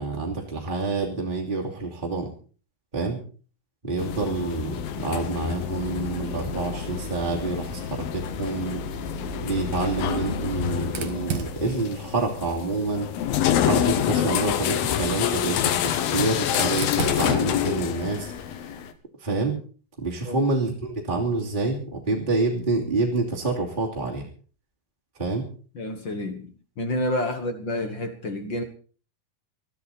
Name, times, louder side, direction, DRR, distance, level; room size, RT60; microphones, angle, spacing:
voice 1, 0.0-2.3 2.9-3.2 3.8-8.8 9.4-13.1 13.6-18.3 19.2-19.6 20.0-24.3 25.2-25.4, right 3 dB, 15° right, -2 dB, 2.4 m, -27 dB
sound 1, 4.0-18.9, left 9 dB, 80° left, 3.0 m, -27 dB
Fire, 10.8-13.6 14.7-19.0, right 8 dB, 60° right, 2.9 m, -38 dB
voice 2, 25.7-28.6, left 1 dB, 55° left, 7 dB, 1.3 m, -29 dB
21.5 x 13.0 x 4.2 m, 0.41 s
omnidirectional pair, 4.2 m